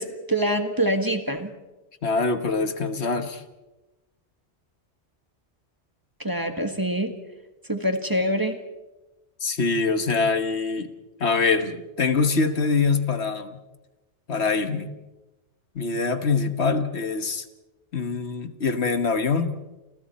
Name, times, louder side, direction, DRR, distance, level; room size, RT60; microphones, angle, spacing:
voice 1, 0.0-1.5 6.2-7.1 7.7-8.6, right 1 dB, 20° right, 6 dB, 1.6 m, -25 dB
voice 2, 2.0-3.4 9.4-10.9 11.2-13.6 14.3-14.9 15.8-17.5 17.9-19.5, left 4 dB, 70° left, 9 dB, 1.6 m, -24 dB
29.5 x 27.0 x 4.3 m, 1.1 s
omnidirectional pair, 1.2 m